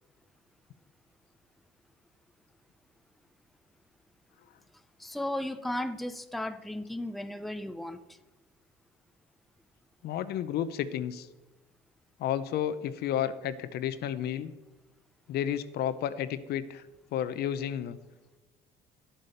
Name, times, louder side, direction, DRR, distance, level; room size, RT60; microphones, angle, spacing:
voice 1, 5.0-8.2, left 1 dB, ahead, 10 dB, 0.6 m, -35 dB
voice 2, 10.0-11.3 12.2-14.5 15.3-16.8 17.1-18.0, left 10 dB, 70° left, 13 dB, 0.8 m, -31 dB
10.5 x 8.4 x 6.6 m, 1.1 s
cardioid pair, 110°, 17 cm